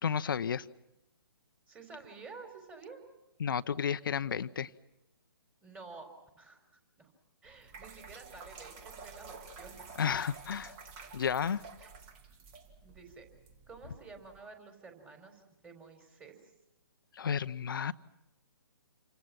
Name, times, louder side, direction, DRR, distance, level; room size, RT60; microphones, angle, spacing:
voice 1, 0.0-0.7 3.4-4.7 10.0-10.7 11.1-11.6 17.1-17.9, left 7 dB, 60° left, 13 dB, 0.9 m, -32 dB
voice 2, 1.7-3.0 5.6-6.1 6.4-7.1 7.4-9.9 11.8-11.9 12.8-13.3 13.7-16.4, right 4 dB, 10° right, 5 dB, 4.3 m, -51 dB
sound 1, 7.4-14.4, right 4 dB, 30° right, 2.7 m, -51 dB
29.0 x 25.0 x 6.0 m, 0.93 s
figure-of-eight pair, 135°, 13 cm